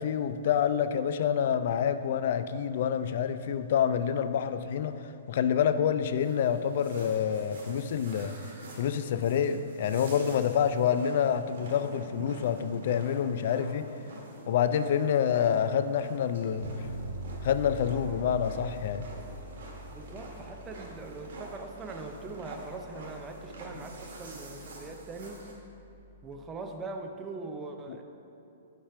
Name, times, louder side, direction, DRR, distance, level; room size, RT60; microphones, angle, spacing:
voice 1, 0.0-8.3 8.8-13.9 14.5-16.7 17.4-19.1, left 8 dB, 55° left, 11 dB, 0.3 m, -27 dB
sound 1, 6.2-25.5, right 1 dB, 60° right, 1.7 m, -47 dB
Bass guitar, 16.6-26.3, right 1 dB, 5° left, 1.4 m, -45 dB
voice 2, 19.9-25.4 26.2-28.0, right 3 dB, 15° right, 4 dB, 0.5 m, -41 dB
5.6 x 4.9 x 5.7 m, 2.7 s
hypercardioid pair, 155°, 0 cm